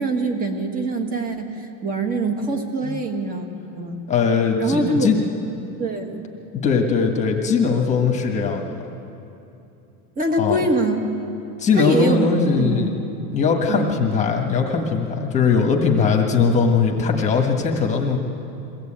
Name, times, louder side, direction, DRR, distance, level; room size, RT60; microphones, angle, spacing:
voice 1, 0.0-3.5 3.8-4.0 4.6-5.1 5.8-6.2 10.2-11.0 11.7-12.2 12.6-12.9 13.7-14.0, right 2 dB, 20° right, 5 dB, 1.6 m, -23 dB
voice 2, 4.1-5.2 6.6-8.7 10.4-10.6 11.6-12.9 13.3-18.2, left 5 dB, 15° left, 2 dB, 1.5 m, -20 dB
22.5 x 16.5 x 8.8 m, 2.8 s
supercardioid pair, 175°, 44 cm